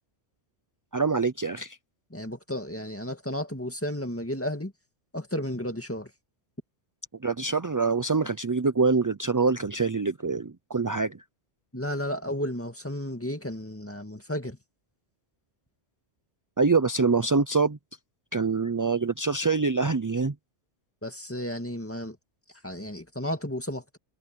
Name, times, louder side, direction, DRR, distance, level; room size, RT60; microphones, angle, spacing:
voice 1, 0.9-1.8 7.2-11.2 16.6-17.8 18.3-20.3, right 4 dB, 30° right, 0.4 m, -25 dB
voice 2, 2.1-4.7 5.1-6.1 11.7-14.6 21.0-22.2 22.6-24.0, left 1 dB, 10° left, 2.0 m, -33 dB
omnidirectional pair, 1.2 m